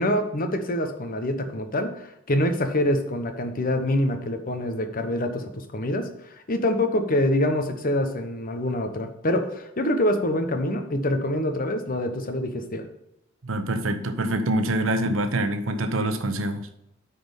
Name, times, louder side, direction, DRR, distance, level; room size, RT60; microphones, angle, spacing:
voice 1, 0.0-6.1 6.5-12.9, left 1 dB, 45° left, 6 dB, 1.0 m, -25 dB
voice 2, 13.4-16.7, right 1 dB, 85° right, 9 dB, 0.9 m, -25 dB
9.4 x 4.3 x 5.3 m, 0.82 s
head